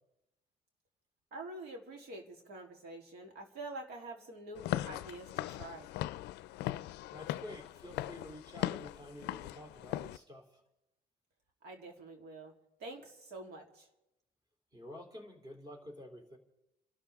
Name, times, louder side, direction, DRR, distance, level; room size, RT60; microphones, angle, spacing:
voice 1, 1.3-5.9 11.6-12.5 12.8-13.9, right 2 dB, 75° right, 2 dB, 3.4 m, -47 dB
Walk footsteps / Siren, 4.6-10.2, left 15 dB, 80° left, 0.5 m, -39 dB
voice 2, 7.1-10.6 14.7-16.4, left 1 dB, 20° right, 1 dB, 3.3 m, -49 dB
30.0 x 12.5 x 3.6 m, 0.91 s
cardioid pair, 110°, 17 cm